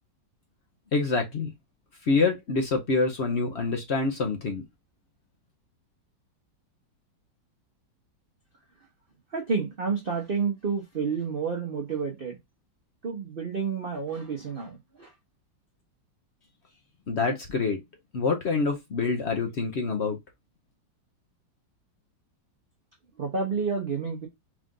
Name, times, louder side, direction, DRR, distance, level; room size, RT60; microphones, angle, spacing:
voice 1, 0.9-1.5 2.0-4.6 17.1-17.8 18.1-20.2, left 4 dB, 55° left, 0.7 m, -26 dB
voice 2, 9.3-12.4 13.0-15.1 23.2-24.3, right 5 dB, 45° right, 0.8 m, -30 dB
4.9 x 2.5 x 3.6 m
omnidirectional pair, 2.0 m